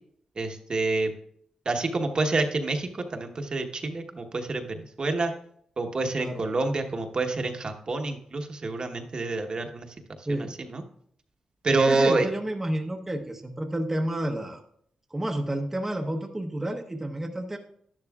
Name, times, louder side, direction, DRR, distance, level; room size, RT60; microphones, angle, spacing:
voice 1, 0.4-1.1 1.6-5.3 5.8-9.9 10.7-10.8 11.6-12.3, right 3 dB, 45° right, 4 dB, 1.1 m, -27 dB
voice 2, 11.9-14.6 15.1-17.6, right 1 dB, 15° right, 2 dB, 0.9 m, -30 dB
11.5 x 10.5 x 2.4 m, 0.66 s
cardioid pair, 75°, 2 cm